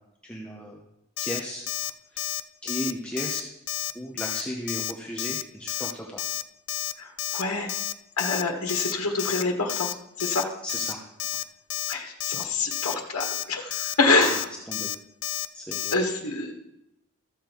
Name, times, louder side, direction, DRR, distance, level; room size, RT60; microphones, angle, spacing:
voice 1, 0.2-0.8 1.2-2.3 2.6-3.4 3.9-6.2 10.6-11.0 11.3-11.4 14.1-14.2 14.7-14.9 15.5-15.9, equal, 5° left, -1 dB, 0.9 m, -35 dB
Alarm, 1.2-1.4 1.7-1.9 2.2-2.4 2.7-2.9 3.2-3.4 3.7-3.9 4.2-4.4 4.7-4.9 5.2-5.4 5.7-5.9 6.2-6.4 6.7-6.9 7.2-7.4 7.7-7.9 8.2-8.4 8.7-8.9 9.2-9.4 9.7-9.9 10.2-10.4 10.7-10.9 11.2-11.4 11.7-11.9 12.2-12.4 12.7-12.9 13.2-13.4 13.7-13.9 14.2-14.4 14.7-15.0 15.2-15.5 15.7-15.9, left 15 dB, 60° left, 0.4 m, -30 dB
voice 2, 7.0-7.7 8.2-10.5 11.9-14.5 15.9-16.5, left 3 dB, 75° left, 1 dB, 1.5 m, -26 dB
14.0 x 7.5 x 4.5 m, 0.83 s
head